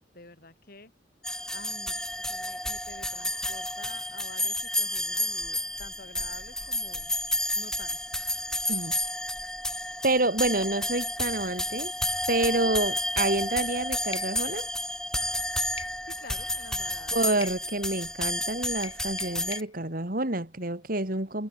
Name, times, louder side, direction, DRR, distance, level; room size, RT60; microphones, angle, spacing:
voice 1, 0.1-0.9 1.5-7.1 7.6-8.0 16.0-17.5 17.8-18.0, left 2 dB, 55° left, 7.6 m, -48 dB
sound 1, 1.2-19.6, left 1 dB, 5° left, 2.6 m, -31 dB
voice 2, 10.0-11.9 12.3-14.7 17.1-21.5, right 2 dB, 50° right, 3.8 m, -28 dB
sound 2, 14.1-14.3 15.8-16.0 17.4-17.6 18.8-19.7, left 6 dB, 30° left, 3.5 m, -41 dB
head